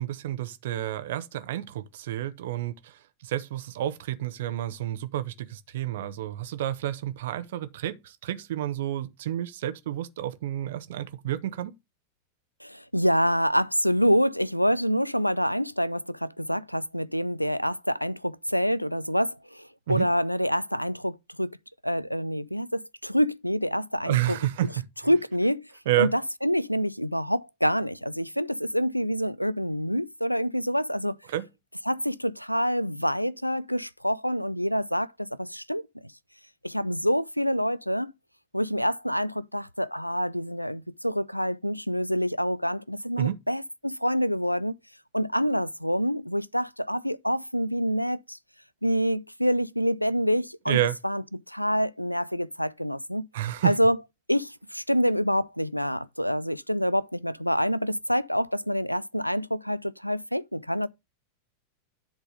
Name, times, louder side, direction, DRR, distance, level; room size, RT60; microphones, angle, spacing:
voice 1, 0.0-11.7 19.9-20.1 24.0-24.7 25.9-26.1 31.3-31.5 43.2-43.4 50.7-51.0 53.3-53.7, right 13 dB, 55° right, 0.9 m, -30 dB
voice 2, 12.6-21.6 21.8-24.4 25.1-25.7 26.0-31.2 31.9-36.1 36.6-38.1 38.5-44.8 45.1-48.4 48.8-50.8 51.0-53.3 53.6-54.0 54.3-60.9, equal, 90° left, 0.4 m, -27 dB
10.5 x 3.9 x 5.0 m
figure-of-eight pair, 90°, 0 cm